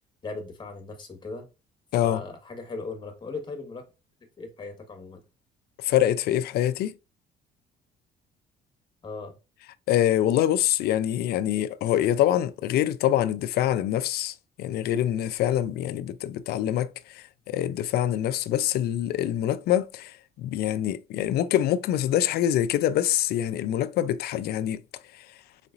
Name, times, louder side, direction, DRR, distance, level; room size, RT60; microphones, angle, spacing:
voice 1, 0.2-1.5 2.0-3.8 4.4-5.2 9.0-9.3, left 3 dB, 25° left, 1.5 m, -38 dB
voice 2, 5.8-6.9 9.9-24.8 25.2-25.3, left 11 dB, 70° left, 0.4 m, -25 dB
4.1 x 3.9 x 2.5 m
cardioid pair, 110°, 17 cm